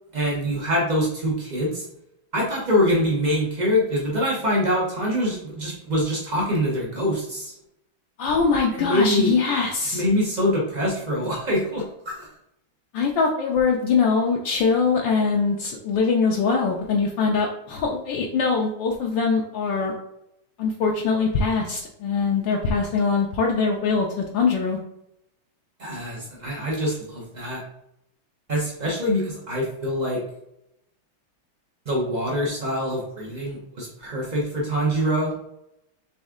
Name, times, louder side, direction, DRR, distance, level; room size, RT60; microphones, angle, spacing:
voice 1, 0.1-1.8 2.3-7.5 8.7-9.3 9.9-12.3 25.8-27.6 28.5-30.2 31.9-35.3, equal, 80° right, -3 dB, 0.4 m, -24 dB
voice 2, 8.2-10.0 12.9-19.9 20.6-24.8, left 4 dB, 75° left, 0 dB, 1.2 m, -22 dB
4.2 x 3.4 x 3.6 m, 0.80 s
omnidirectional pair, 2.3 m